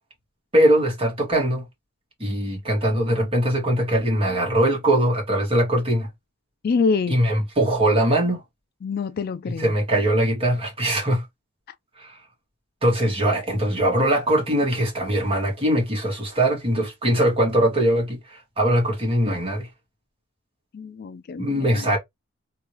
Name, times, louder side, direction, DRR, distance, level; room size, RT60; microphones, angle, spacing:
voice 1, 0.5-1.6 2.2-6.1 7.1-8.4 9.6-11.2 12.0-12.2 12.8-19.7 21.4-22.0, right 1 dB, 25° right, 2.0 m, -21 dB
voice 2, 6.6-7.2 8.8-9.7 20.7-22.0, left 4 dB, 45° left, 0.3 m, -26 dB
3.4 x 3.0 x 3.0 m
head